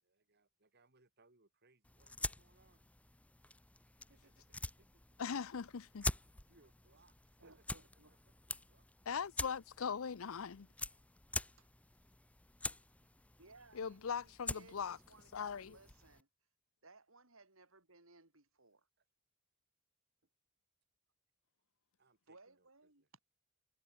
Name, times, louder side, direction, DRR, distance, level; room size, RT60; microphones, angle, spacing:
voice 1, 0.0-2.9 4.0-5.0 6.4-7.8 8.1-8.2 8.5-9.2 13.0-13.1 19.0-19.1 22.0-23.1, right 3 dB, 50° right, 3.1 m, -71 dB
sound 1, 1.8-16.2, left 2 dB, 5° left, 0.5 m, -46 dB
voice 2, 5.2-6.1 9.1-10.7 13.7-15.0 15.3-15.8, left 6 dB, 75° left, 0.6 m, -40 dB
voice 3, 7.4-8.2 11.6-11.7 12.7-12.8 13.4-16.3 16.8-18.9 22.3-23.0, right 3 dB, 70° right, 5.7 m, -63 dB
head